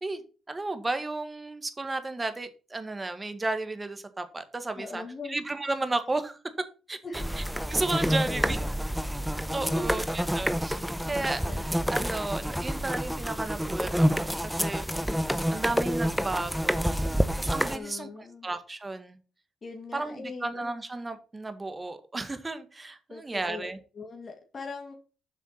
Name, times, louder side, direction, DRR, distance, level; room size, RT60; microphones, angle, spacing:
voice 1, 0.0-5.0 5.3-6.4 6.9-7.0 7.7-8.6 9.5-14.9 15.5-17.0 17.4-19.2 19.9-23.8, right 2 dB, 20° right, 1.8 m, -33 dB
voice 2, 4.7-5.4 7.0-7.3 8.0-8.6 9.5-10.0 11.1-11.7 17.7-18.5 19.6-20.6 23.1-23.7 23.9-24.9, left 3 dB, 35° left, 2.3 m, -40 dB
sound 1, 7.1-17.8, equal, ahead, 0.9 m, -28 dB
8.2 x 6.0 x 5.7 m
cardioid pair, 90°, 0 cm